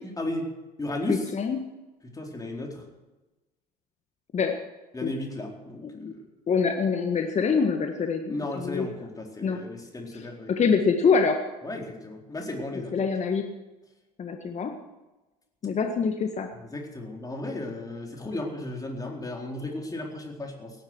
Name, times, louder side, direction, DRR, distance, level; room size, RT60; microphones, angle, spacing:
voice 1, 0.0-0.5 0.8-1.3 2.1-2.8 4.9-5.8 6.1-6.2 8.3-10.5 11.6-12.9 16.7-20.7, left 2 dB, 20° left, 1 dB, 4.3 m, -34 dB
voice 2, 1.1-1.6 4.3-4.6 5.0-5.1 5.8-6.1 6.5-8.9 9.4-9.6 10.1-11.4 12.9-13.5 14.2-14.7 15.6-16.5, left 5 dB, 35° left, 5 dB, 1.6 m, -25 dB
17.5 x 11.0 x 6.4 m, 1.1 s
hypercardioid pair, 65°, 20 cm